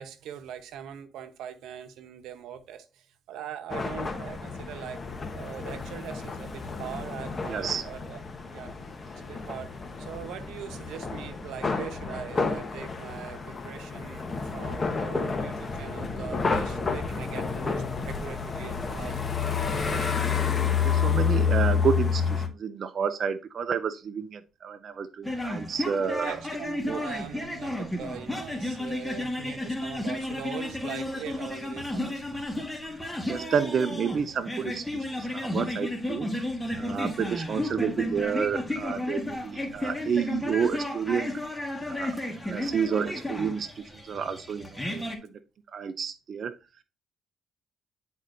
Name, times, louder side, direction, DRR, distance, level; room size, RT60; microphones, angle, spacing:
voice 1, 0.0-5.0 5.3-8.2 8.5-8.7 9.1-9.7 10.0-19.4 19.7-20.2 26.2-32.2, right 9 dB, 85° right, 0.9 m, -41 dB
sound 1, 3.7-22.5, left 5 dB, 30° left, 1.2 m, -30 dB
voice 2, 7.5-7.8 20.8-26.4 26.9-27.1 33.3-36.3 36.8-41.4 41.9-45.0 45.7-46.5, right 7 dB, 55° right, 0.5 m, -30 dB
sound 2, 25.2-45.2, left 1 dB, 5° left, 1.6 m, -33 dB
9.9 x 4.2 x 2.6 m
cardioid pair, 90°, 0 cm